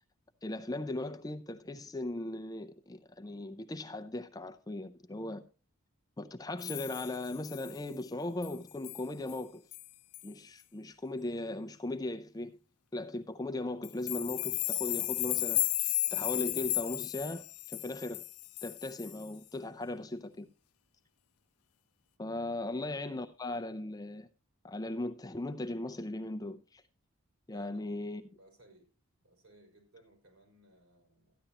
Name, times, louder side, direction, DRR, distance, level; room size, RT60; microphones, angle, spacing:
voice 1, 0.4-5.4 6.2-9.6 10.2-12.6 12.9-18.2 18.6-20.5 22.2-24.3 24.6-26.8 27.5-28.2, left 2 dB, 15° left, 0.4 m, -38 dB
sound 1, 6.6-7.8 8.4-8.6 8.8-9.0 9.3-9.4 9.7-9.9 10.1-10.2 13.8-19.3, left 19 dB, 90° left, 0.5 m, -34 dB
voice 2, 27.5-28.0 28.3-28.9 29.2-31.4, right 1 dB, 75° right, 4.6 m, -61 dB
13.5 x 10.0 x 2.9 m
head